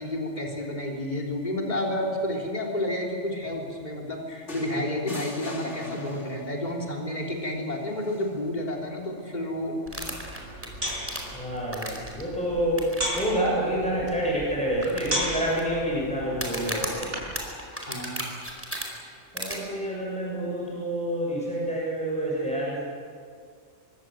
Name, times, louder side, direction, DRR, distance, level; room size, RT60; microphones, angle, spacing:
voice 1, 0.0-9.8 17.9-18.3, left 1 dB, 35° left, -1 dB, 3.7 m, -30 dB
sound 1, 4.5-6.6 8.0-8.2, left 2 dB, 65° left, 3.7 m, -40 dB
sound 2, 9.9-12.2 12.8-13.2 13.5-13.6 14.1-14.2 14.8-15.6 16.3-18.8 19.4-19.6, equal, 10° right, 4.8 m, -34 dB
sound 3, 9.9-17.4, equal, 70° right, 6.1 m, -36 dB
voice 2, 11.3-12.9 13.2-17.1 19.3-22.8, right 1 dB, 5° left, -4 dB, 6.5 m, -28 dB
25.5 x 23.5 x 7.7 m, 2.1 s
omnidirectional pair, 1.3 m